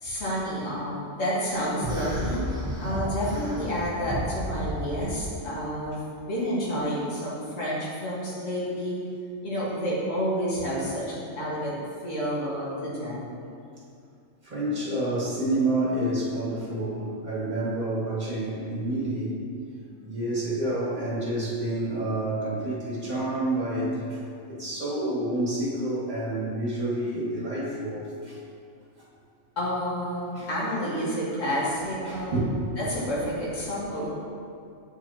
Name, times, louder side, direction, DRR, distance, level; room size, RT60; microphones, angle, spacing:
voice 1, 0.0-6.0 6.3-9.0 9.4-11.8 12.0-13.3 29.6-32.4 32.8-34.1, equal, 80° left, -8 dB, 2.1 m, -29 dB
sound 1, 1.8-5.2, equal, 5° right, 0.8 m, -32 dB
voice 2, 14.4-19.3 20.0-28.4 30.4-30.5 31.5-31.6 32.0-32.7, right 1 dB, 35° right, -8 dB, 1.8 m, -29 dB
8.2 x 5.1 x 2.9 m, 2.4 s
omnidirectional pair, 1.3 m